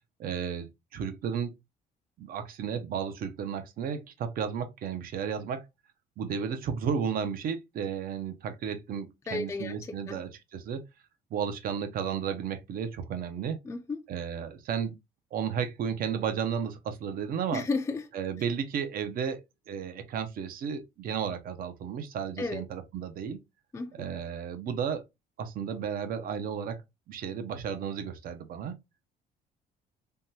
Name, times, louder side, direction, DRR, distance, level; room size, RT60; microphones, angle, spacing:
voice 1, 0.2-1.5 2.2-5.7 6.2-10.8 11.3-13.6 14.1-15.0 15.3-17.6 18.1-19.4 19.7-23.4 23.9-25.0 25.4-26.8 27.1-28.8, right 7 dB, 60° right, 0.6 m, -33 dB
voice 2, 9.3-9.8 10.1-10.2 13.7-14.0 17.5-18.0 22.4-22.6 23.7-23.9, left 3 dB, 15° left, 0.4 m, -32 dB
3.5 x 2.2 x 2.7 m
cardioid pair, 110°, 17 cm